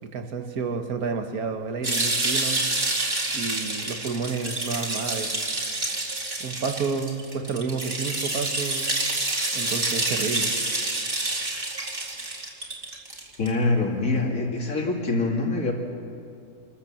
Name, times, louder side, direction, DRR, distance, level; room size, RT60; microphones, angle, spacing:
voice 1, 0.0-2.7 3.3-5.5 6.4-9.0 9.5-10.5, right 5 dB, 80° right, 5 dB, 1.8 m, -30 dB
sound 1, 1.8-13.5, right 2 dB, 35° right, 2.6 m, -28 dB
voice 2, 13.4-15.7, left 3 dB, 65° left, 0 dB, 2.9 m, -24 dB
27.5 x 13.0 x 7.5 m, 2.4 s
omnidirectional pair, 1.5 m